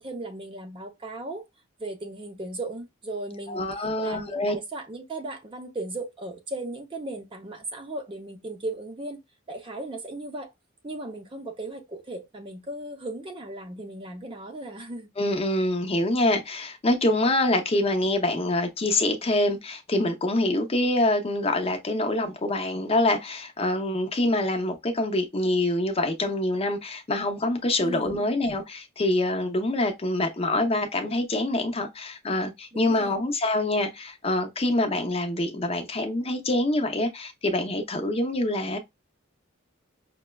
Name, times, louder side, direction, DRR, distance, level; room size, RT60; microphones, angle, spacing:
voice 1, 0.0-1.4 1.8-3.7 4.0-9.2 9.5-10.5 10.8-15.1 27.8-28.2 32.7-33.1, right 2 dB, 25° right, 0.6 m, -36 dB
voice 2, 3.5-4.6 15.2-38.8, left 1 dB, 30° left, 0.6 m, -25 dB
5.7 x 2.1 x 2.2 m
head